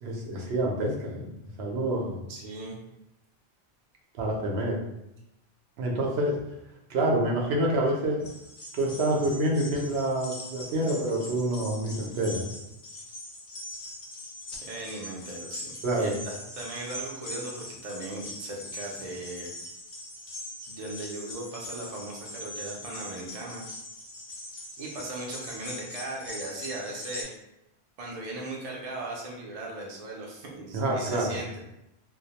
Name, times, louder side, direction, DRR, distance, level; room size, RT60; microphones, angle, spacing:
voice 1, 0.0-1.2 1.6-2.2 4.2-4.8 5.8-6.4 6.9-8.2 8.7-12.4 15.8-16.1 30.7-31.3, right 1 dB, 80° right, -1 dB, 0.8 m, -27 dB
voice 2, 2.3-2.8 14.6-19.5 20.7-23.6 24.8-27.3 28.0-31.6, right 2 dB, 45° right, -2 dB, 0.5 m, -38 dB
sound 1, 8.2-27.2, left 1 dB, 65° left, 0.7 m, -42 dB
2.2 x 2.0 x 2.8 m, 0.85 s
omnidirectional pair, 1.0 m